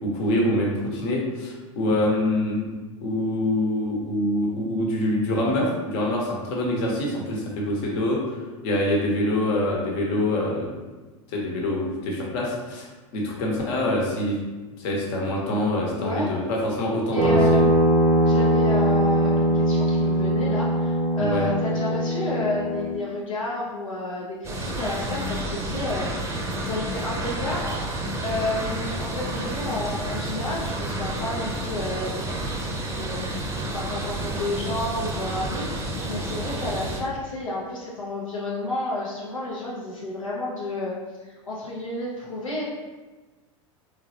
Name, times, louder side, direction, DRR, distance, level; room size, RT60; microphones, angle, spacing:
voice 1, 0.0-2.7 3.0-8.3 8.6-10.6 11.3-12.9 13.1-14.4 14.8-17.4 21.2-21.5, left 1 dB, 55° left, -2 dB, 1.1 m, -25 dB
voice 2, 16.0-16.3 17.1-17.6 18.2-41.0 41.2-42.6, left 2 dB, 90° left, -6 dB, 0.8 m, -31 dB
sound 1, 17.2-22.9, right 1 dB, 90° right, 0.7 m, -21 dB
sound 2, 24.4-37.0, right 1 dB, 15° right, 0.6 m, -30 dB
3.8 x 3.2 x 2.8 m, 1.3 s
hypercardioid pair, 90°, 16 cm